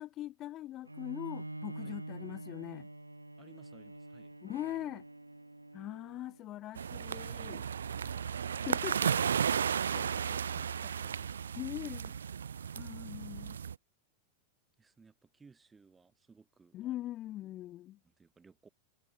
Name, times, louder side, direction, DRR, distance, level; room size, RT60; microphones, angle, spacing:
voice 1, 0.0-2.9 4.4-5.0 5.7-7.6 8.7-9.2 9.9-10.4 11.6-12.1 12.8-13.6 16.7-18.0, left 14 dB, 35° left, 0.4 m, -41 dB
Bowed string instrument, 0.8-6.5, right 2 dB, 85° right, 1.6 m, -46 dB
voice 2, 3.4-4.4 14.8-17.1 18.0-18.7, right 4 dB, 15° right, 3.2 m, -61 dB
Brass instrument, 4.4-8.7, equal, 90° left, 1.7 m, -64 dB
sound 1, 6.8-13.7, right 7 dB, 70° right, 0.4 m, -34 dB
figure-of-eight pair, 90°, 0 cm